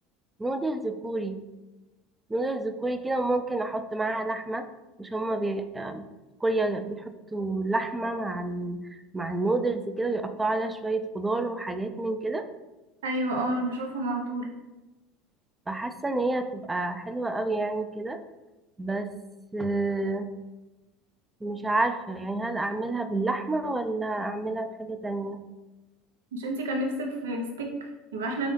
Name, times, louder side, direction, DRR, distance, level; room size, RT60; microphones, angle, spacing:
voice 1, 0.4-1.4 2.3-4.7 5.0-6.0 6.4-8.8 9.1-12.4 15.7-18.2 18.8-19.1 19.5-20.3 21.4-25.4, right 2 dB, 15° right, 8 dB, 0.4 m, -29 dB
voice 2, 13.0-14.5 26.3-28.5, right 1 dB, 75° right, 2 dB, 0.7 m, -30 dB
4.0 x 3.6 x 3.2 m, 1.1 s
figure-of-eight pair, 70°, 0 cm